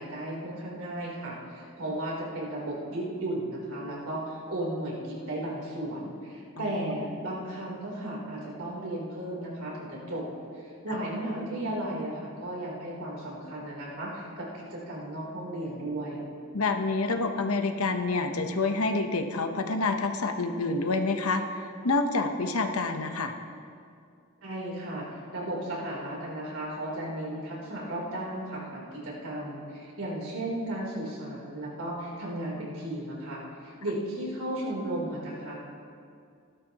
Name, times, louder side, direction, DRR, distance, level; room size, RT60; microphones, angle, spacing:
voice 1, 0.0-10.3 10.5-16.3 24.4-35.6, right 1 dB, 75° right, -4 dB, 3.6 m, -35 dB
voice 2, 6.6-7.1 16.5-21.4 21.8-23.3, left 3 dB, 85° left, 6 dB, 1.0 m, -28 dB
16.5 x 12.5 x 3.0 m, 2.3 s
head